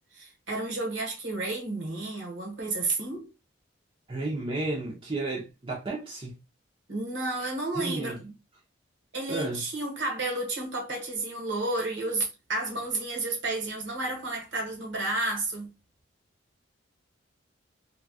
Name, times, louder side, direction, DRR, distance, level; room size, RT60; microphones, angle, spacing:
voice 1, 0.1-3.3 6.9-8.3 9.1-15.7, right 2 dB, 65° right, 1.2 m, -31 dB
voice 2, 4.1-6.3 7.8-8.2 9.3-9.6, right 2 dB, 25° right, 0.7 m, -32 dB
2.8 x 2.3 x 2.7 m
head